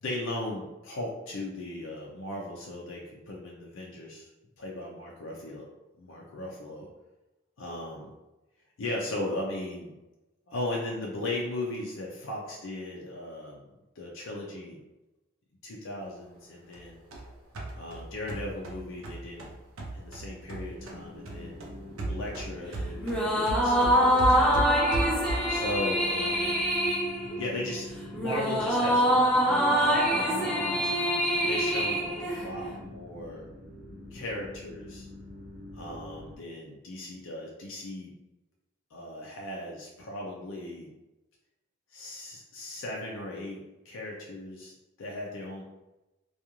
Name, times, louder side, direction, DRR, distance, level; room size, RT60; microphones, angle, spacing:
voice 1, 0.0-4.3 4.6-5.7 6.0-6.9 7.6-8.1 8.8-9.9 10.5-14.8 15.6-17.0 17.7-19.5 19.9-21.6 22.1-24.6 25.5-26.7 27.4-29.0 29.3-30.9 31.4-33.5 34.1-35.1 35.7-38.1 38.9-40.9 41.9-45.6, left 1 dB, 70° left, -2 dB, 0.5 m, -37 dB
sound 1, 16.7-21.0 21.3-25.6, right 2 dB, 80° right, 0.6 m, -35 dB
sound 2, 20.8-36.4, left 1 dB, 60° right, 0.9 m, -46 dB
sound 3, 23.0-32.7, equal, 5° left, 0.4 m, -25 dB
2.4 x 2.3 x 2.9 m, 1.0 s
head